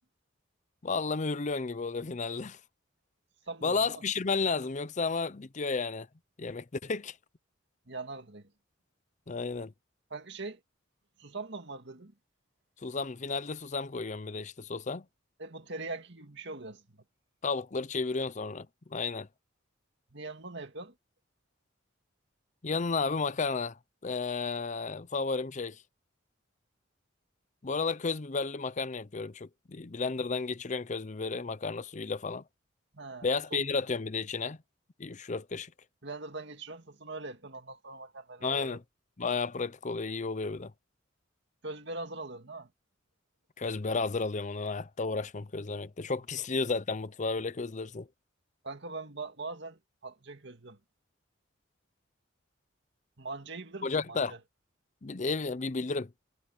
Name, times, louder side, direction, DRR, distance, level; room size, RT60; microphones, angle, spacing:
voice 1, 0.8-2.6 3.6-6.1 6.4-7.2 9.3-9.7 12.8-15.0 17.4-18.7 18.9-19.3 22.6-25.8 27.6-32.4 33.2-34.6 35.0-35.7 38.4-38.8 39.2-40.7 43.6-48.1 53.8-54.4 55.0-56.2, left 4 dB, 35° left, 0.6 m, -32 dB
voice 2, 3.5-4.0 7.9-8.5 10.1-10.6 11.2-12.1 15.4-17.0 20.1-20.9 32.9-33.6 36.0-38.8 41.6-42.7 46.4-46.5 48.6-50.8 53.2-54.4, right 3 dB, 60° right, 2.3 m, -42 dB
head